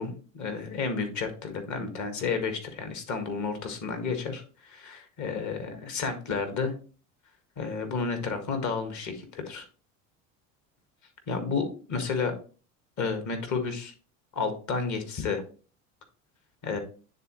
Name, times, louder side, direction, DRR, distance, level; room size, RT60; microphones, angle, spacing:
voice 1, 0.0-6.7 7.6-9.7 11.3-12.4 13.0-13.9 14.3-15.4 16.6-16.8, left 5 dB, 45° left, 6 dB, 1.7 m, -31 dB
9.8 x 3.8 x 3.1 m, 0.37 s
hypercardioid pair, 85°, 41 cm